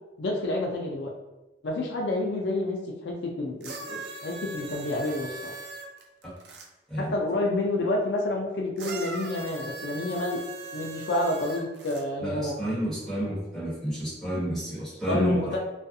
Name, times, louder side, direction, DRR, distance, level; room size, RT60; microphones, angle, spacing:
voice 1, 0.2-1.1 1.6-5.5 7.0-10.4 10.7-12.5 15.1-15.6, left 2 dB, 70° left, 0 dB, 0.4 m, -29 dB
sound 1, 3.6-6.7 8.8-12.0 13.0-13.1, right 2 dB, 65° right, 0.4 m, -40 dB
voice 2, 12.2-15.5, right 1 dB, ahead, -12 dB, 1.3 m, -30 dB
2.4 x 2.3 x 2.6 m, 1.1 s
head